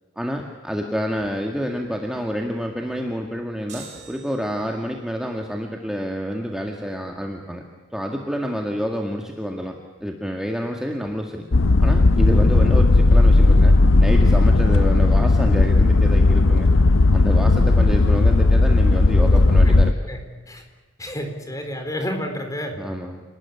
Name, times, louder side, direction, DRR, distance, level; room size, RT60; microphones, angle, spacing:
voice 1, 0.2-7.6 7.9-11.4 11.8-16.7 17.1-19.9 22.8-23.2, equal, 5° right, 2 dB, 1.8 m, -28 dB
sound 1, 3.7-5.0, right 5 dB, 35° right, 7.8 m, -43 dB
sound 2, 11.5-19.9, left 2 dB, 80° left, 0.8 m, -15 dB
voice 2, 20.1-20.6 21.0-22.8, equal, 15° left, 5 dB, 4.1 m, -30 dB
28.5 x 19.0 x 9.8 m, 1.3 s
head